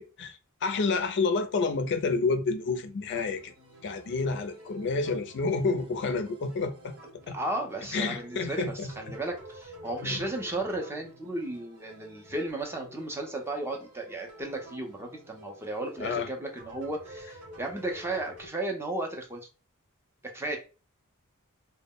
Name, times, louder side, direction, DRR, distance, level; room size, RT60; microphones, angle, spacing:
voice 1, 0.0-3.5 3.8-6.9 7.3-7.4 7.9-9.2 10.0-10.2 16.0-16.3, left 4 dB, 55° left, 0.4 m, -29 dB
sound 1, 3.1-18.5, right 1 dB, 80° right, 1.1 m, -50 dB
voice 2, 7.3-19.4 20.2-20.6, right 1 dB, 10° right, 0.5 m, -34 dB
2.2 x 2.0 x 3.5 m
head